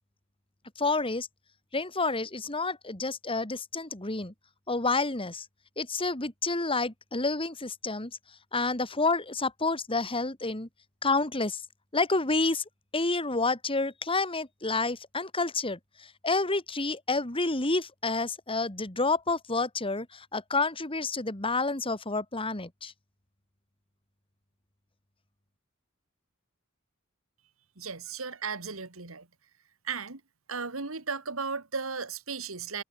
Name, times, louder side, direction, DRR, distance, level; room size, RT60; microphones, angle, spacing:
voice 1, 0.8-1.3 1.7-4.3 4.7-5.5 5.8-10.7 11.0-11.6 11.9-22.9, left 3 dB, 25° left, 2.7 m, -29 dB
voice 2, 27.8-29.3 29.8-30.2 30.5-32.8, right 5 dB, 80° right, 2.3 m, -35 dB
head